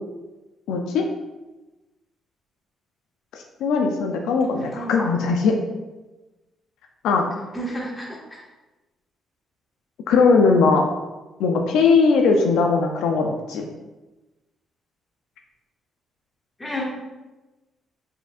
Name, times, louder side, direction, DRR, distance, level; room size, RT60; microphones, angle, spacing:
voice 1, 0.7-1.0 3.6-5.6 7.0-7.2 10.1-10.8 11.4-13.7, left 4 dB, 85° left, 3 dB, 0.4 m, -19 dB
voice 2, 4.6-5.1 7.5-8.4 16.6-16.8, equal, 20° left, -3 dB, 1.4 m, -31 dB
4.7 x 4.3 x 2.4 m, 1.1 s
cardioid pair, 90°, 0 cm